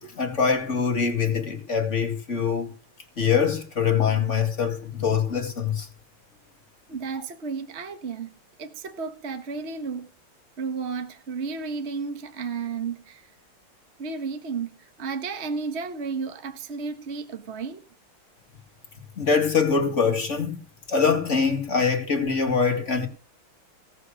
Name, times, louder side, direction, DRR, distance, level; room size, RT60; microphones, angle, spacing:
voice 1, 0.0-2.7 3.2-5.9 19.2-20.6 20.9-23.1, left 6 dB, 35° left, 2.3 m, -23 dB
voice 2, 6.9-10.1 10.6-13.3 14.0-17.8, right 5 dB, 35° right, 1.5 m, -33 dB
17.0 x 6.5 x 6.4 m
omnidirectional pair, 2.3 m